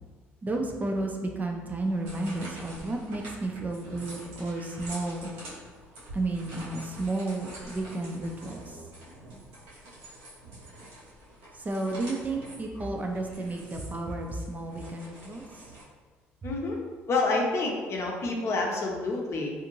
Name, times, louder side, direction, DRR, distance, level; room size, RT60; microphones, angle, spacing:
voice 1, 0.4-5.3 6.1-8.8 11.5-15.6, right 2 dB, 30° right, 2 dB, 0.4 m, -32 dB
sound 1, 1.8-15.8, right 1 dB, 85° right, 0.9 m, -46 dB
voice 2, 11.8-12.1 16.4-16.8 17.1-19.5, left 3 dB, 50° left, -1 dB, 0.6 m, -28 dB
2.5 x 2.5 x 3.0 m, 1.4 s
hypercardioid pair, 60°, 6 cm